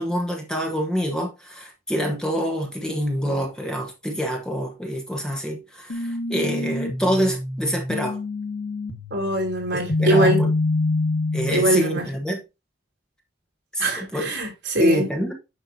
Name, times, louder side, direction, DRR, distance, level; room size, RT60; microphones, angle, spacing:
voice 1, 0.0-8.2 9.7-10.5 11.3-12.4 13.7-14.3 14.8-15.3, equal, 5° left, 1.1 m, -26 dB
sound 1, 5.9-11.8, left 2 dB, 90° left, 1.5 m, -26 dB
voice 2, 9.1-10.4 11.5-12.0 13.8-15.0, right 1 dB, 70° right, 3.2 m, -22 dB
9.3 x 5.7 x 2.7 m
head